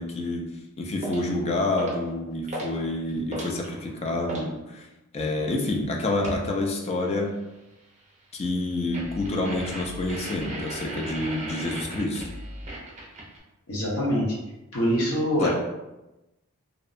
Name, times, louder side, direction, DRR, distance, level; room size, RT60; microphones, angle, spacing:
voice 1, 0.0-4.9 5.1-7.4 8.3-12.3 15.4-15.5, left 2 dB, 30° left, 1 dB, 0.3 m, -28 dB
sound 1, 1.0-1.3 1.8-2.1 2.5-2.8 3.1-4.5 6.2-6.5 8.9-13.4, right 1 dB, 30° right, 0.5 m, -36 dB
voice 2, 13.7-14.2 14.7-15.5, equal, 75° left, -5 dB, 0.8 m, -24 dB
2.6 x 2.0 x 2.5 m, 0.99 s
head